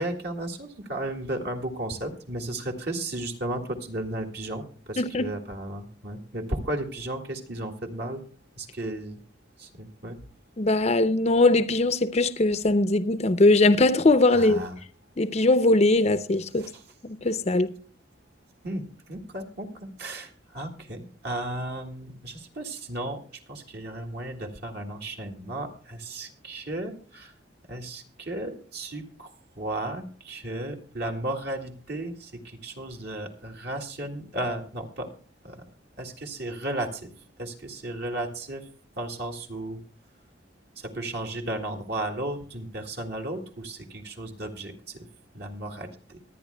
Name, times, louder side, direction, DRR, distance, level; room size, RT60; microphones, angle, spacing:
voice 1, 0.0-8.2 8.6-9.2 9.6-10.2 14.3-14.7 16.6-16.7 18.6-23.2 23.5-27.3 27.7-29.3 29.6-35.1 35.4-35.6 36.0-37.1 37.4-38.7 39.0-39.8 40.8-45.1 45.3-46.2, right 1 dB, 55° right, 1.9 m, -34 dB
voice 2, 5.0-5.3 10.6-14.6 15.2-16.7 17.0-17.7, left 2 dB, 35° left, 0.6 m, -21 dB
24.5 x 9.4 x 2.2 m
head